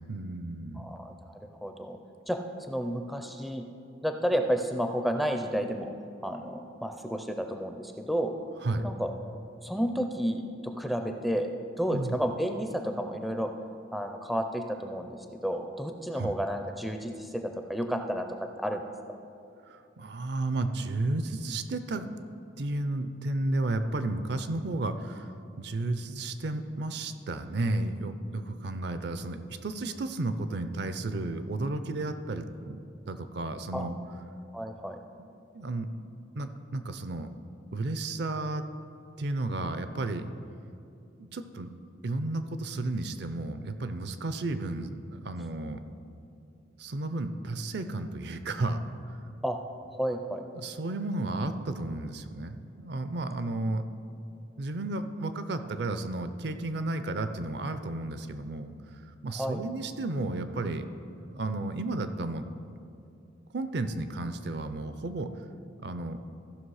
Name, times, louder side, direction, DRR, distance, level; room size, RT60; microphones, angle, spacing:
voice 1, 0.1-0.9 8.6-8.8 11.9-12.2 16.1-16.3 19.6-22.1 22.6-25.3 25.6-32.8 33.1-34.0 35.2-35.9 36.4-37.3 37.7-38.7 39.2-40.3 41.2-41.7 42.0-45.8 46.8-48.8 49.1-49.2 50.5-53.8 54.6-60.9 61.1-62.5 63.5-65.3 65.8-66.2, right 2 dB, 55° right, 10 dB, 0.5 m, -33 dB
voice 2, 0.8-2.0 2.3-2.4 2.7-3.6 4.0-5.9 6.2-8.4 8.8-9.1 9.6-11.5 11.8-13.5 13.9-18.3 18.6-18.8 33.7-33.9 34.5-35.0 49.4-49.6 49.9-50.4 59.3-59.6, equal, ahead, 5 dB, 0.4 m, -31 dB
14.5 x 5.9 x 4.8 m, 2.6 s
head